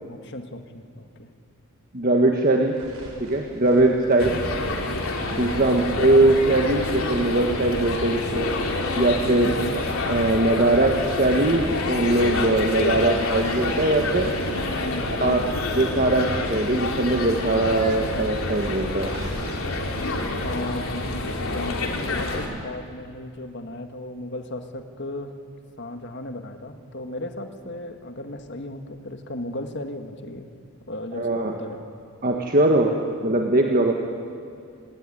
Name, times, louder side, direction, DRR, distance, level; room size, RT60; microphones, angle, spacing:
voice 1, 0.1-1.3 3.9-4.1 5.5-5.9 9.4-9.8 14.8-15.6 20.4-25.3 25.8-30.5 30.9-31.8, left 1 dB, 50° left, 6 dB, 1.8 m, -35 dB
voice 2, 1.9-2.8 3.2-4.4 5.3-8.5 8.9-9.6 10.1-14.3 15.2-15.4 15.7-19.1 31.1-31.5 32.2-32.9 33.2-33.9, right 2 dB, 40° right, 2 dB, 1.6 m, -21 dB
sound 1, 2.6-6.5 6.8-9.8 10.1-10.2 10.5-10.6 11.0-13.4 13.7-16.7 17.0-17.1 17.3-17.4 17.8-19.5, right 1 dB, 75° right, 7.4 m, -45 dB
sound 2, 4.2-22.5, left 2 dB, 70° left, 3.2 m, -28 dB
27.5 x 18.0 x 9.9 m, 2.3 s
head